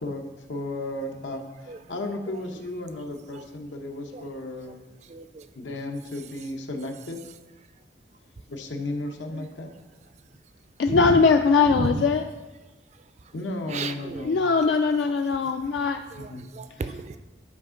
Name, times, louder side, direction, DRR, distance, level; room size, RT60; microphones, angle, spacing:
voice 1, 0.0-4.8 5.5-7.2 8.5-9.7 13.3-14.4 16.2-16.4, left 2 dB, 90° left, 3 dB, 0.9 m, -34 dB
voice 2, 5.1-5.4 10.9-11.1 11.7-12.0 13.7-14.2 16.1-17.2, right 3 dB, 40° right, 10 dB, 0.4 m, -32 dB
voice 3, 10.8-12.2 14.2-16.0, left 4 dB, 70° left, 5 dB, 0.3 m, -21 dB
9.7 x 4.3 x 3.7 m, 1.1 s
head